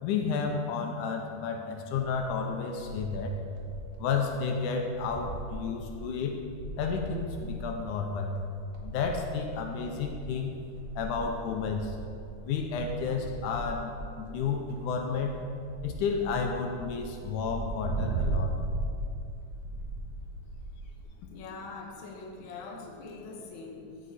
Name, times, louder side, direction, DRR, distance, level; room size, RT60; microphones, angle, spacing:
voice 1, 0.0-3.4 4.0-6.4 6.8-8.3 8.8-10.6 11.0-12.0 12.4-13.9 14.2-15.3 15.8-18.5, left 5 dB, 80° left, 3 dB, 2.1 m, -31 dB
sound 1, 2.0-4.0 4.3-4.4 4.7-21.0, right 2 dB, 70° right, 1.0 m, -38 dB
voice 2, 21.3-24.1, left 3 dB, 55° left, -1 dB, 1.5 m, -43 dB
15.0 x 6.5 x 4.2 m, 2.5 s
omnidirectional pair, 3.7 m